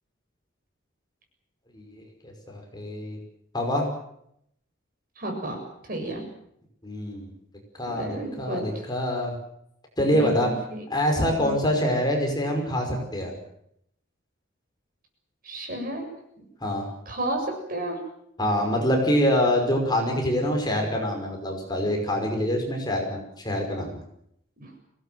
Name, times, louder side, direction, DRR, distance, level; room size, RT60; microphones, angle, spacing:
voice 1, 1.7-3.2 3.5-3.9 6.8-7.3 7.7-9.3 10.0-10.5 10.9-13.3 16.6-16.8 18.4-24.0, equal, 20° left, 2 dB, 5.4 m, -25 dB
voice 2, 5.2-5.6 5.9-6.2 7.9-8.7 10.0-10.8 11.4-11.6 15.4-16.1 17.1-18.0 24.6-24.7, right 1 dB, 45° right, 3 dB, 7.4 m, -32 dB
24.5 x 18.5 x 7.8 m, 0.74 s
head